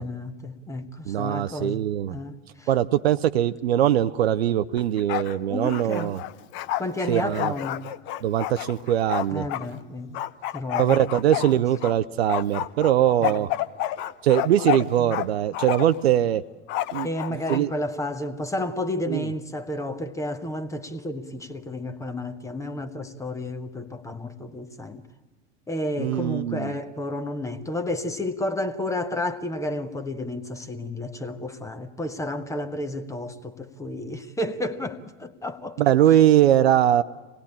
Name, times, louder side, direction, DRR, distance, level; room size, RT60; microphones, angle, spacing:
voice 1, 0.0-1.8 2.1-2.3 2.6-2.7 5.5-6.2 6.8-7.8 9.3-10.2 10.5-11.0 11.5-11.6 13.2-13.4 15.0-15.2 17.0-25.0 25.7-36.0, left 1 dB, 10° left, 1.1 m, -31 dB
voice 2, 1.1-2.1 2.7-6.2 7.1-7.5 8.2-9.4 10.8-13.5 14.2-16.4 16.9-17.1 17.5-17.7 19.1-19.3 26.0-26.7 35.8-37.0, right 11 dB, 55° right, 0.7 m, -21 dB
Bark, 4.8-5.4 5.6-9.7 10.1-11.9 12.3-15.3 15.5-16.0 16.7-17.6, left 13 dB, 30° left, 0.7 m, -29 dB
26.0 x 19.5 x 8.6 m
figure-of-eight pair, 90°, 37 cm